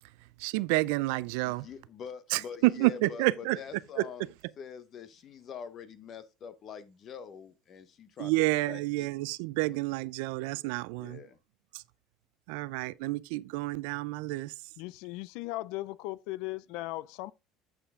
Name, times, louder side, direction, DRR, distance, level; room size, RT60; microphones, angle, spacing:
voice 1, 0.4-1.7 2.3-3.6 4.0-4.1 8.2-11.2 11.7-11.8 12.5-14.5, right 20 dB, 90° right, 0.4 m, -29 dB
voice 2, 1.4-8.3 8.7-9.1 11.0-11.4, left 7 dB, 35° left, 0.9 m, -45 dB
voice 3, 14.8-17.3, left 18 dB, 70° left, 0.3 m, -37 dB
8.3 x 5.7 x 3.6 m
cardioid pair, 160°, 0 cm